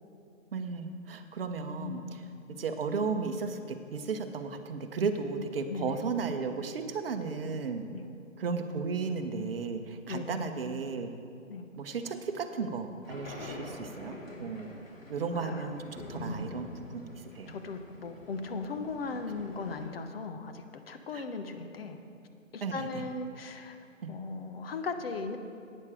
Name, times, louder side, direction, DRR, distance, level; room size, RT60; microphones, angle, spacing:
voice 1, 0.5-2.0 2.5-7.8 8.4-11.1 11.8-14.7 15.1-17.5 21.1-21.2 22.6-22.9 24.0-24.1, right 5 dB, 45° right, 6 dB, 0.9 m, -34 dB
voice 2, 1.8-2.3 5.7-6.1 7.9-8.1 10.1-10.5 11.5-11.7 15.3-15.7 17.5-22.0 22.5-23.8 24.1-25.4, left 4 dB, 50° left, 7 dB, 1.0 m, -38 dB
sound 1, 13.0-19.9, left 1 dB, 90° left, 2.8 m, -45 dB
11.5 x 8.9 x 4.9 m, 2.4 s
hypercardioid pair, 160°, 39 cm